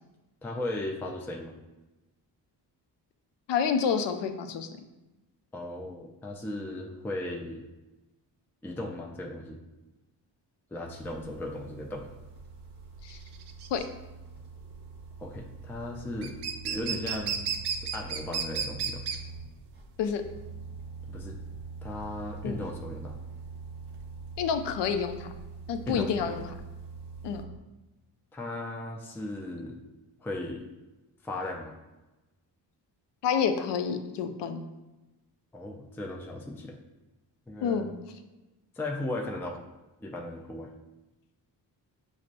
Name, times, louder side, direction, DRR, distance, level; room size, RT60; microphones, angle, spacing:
voice 1, 0.4-1.5 5.5-7.6 8.6-9.6 10.7-12.1 15.2-16.4 16.6-19.0 21.1-21.4 21.8-23.2 25.9-26.4 28.3-29.8 30.2-30.6 31.2-31.7 35.5-36.8 37.5-37.9 38.7-39.6 40.0-40.7, left 1 dB, 5° left, 0 dB, 0.4 m, -37 dB
voice 2, 3.5-4.7 13.0-13.2 13.7-13.9 20.0-20.2 22.4-22.6 24.4-25.3 25.7-26.5 27.2-27.4 33.2-34.6 37.6-37.9, left 6 dB, 70° left, 8 dB, 0.5 m, -28 dB
sound 1, 10.8-19.8 20.2-27.6, right 4 dB, 25° right, 0.8 m, -44 dB
sound 2, 11.1-27.4, right 7 dB, 65° right, 0.5 m, -36 dB
5.8 x 2.1 x 2.5 m, 1.1 s
cardioid pair, 70°, 43 cm